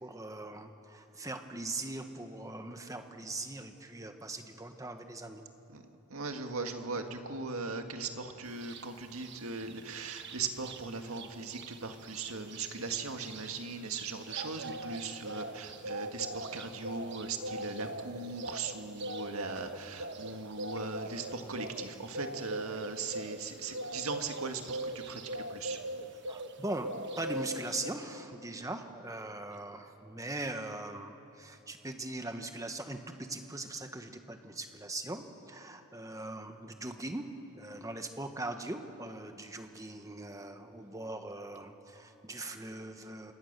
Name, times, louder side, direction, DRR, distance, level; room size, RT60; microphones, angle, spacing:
voice 1, 0.0-5.4 26.3-26.9 27.2-37.3 37.5-43.3, right 2 dB, 15° right, 6 dB, 1.3 m, -40 dB
voice 2, 5.7-25.2 25.5-25.8, right 4 dB, 75° right, 5 dB, 1.9 m, -39 dB
sound 1, 8.6-8.8 9.2-10.8 11.1-11.3 11.5-26.6 26.8-27.9, right 1 dB, 55° right, 1.2 m, -41 dB
28.0 x 25.5 x 6.8 m, 3.0 s
head